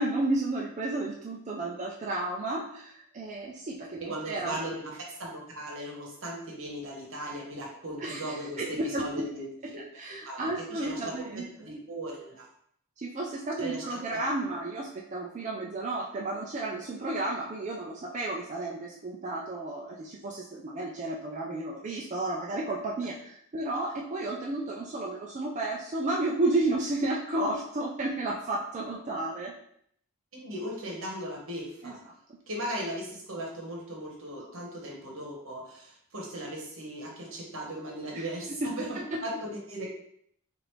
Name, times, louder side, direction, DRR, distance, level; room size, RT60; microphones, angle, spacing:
voice 1, 0.0-4.6 8.0-9.3 9.6-11.7 13.0-29.5 31.8-31.9 34.4-34.5 38.1-38.2 38.6-39.2, right 2 dB, 35° right, -3 dB, 0.4 m, -32 dB
voice 2, 4.0-9.4 10.1-12.5 13.6-14.2 30.3-32.0 32.5-39.9, right 1 dB, 65° right, -2 dB, 1.1 m, -38 dB
4.8 x 2.5 x 3.1 m, 0.68 s
head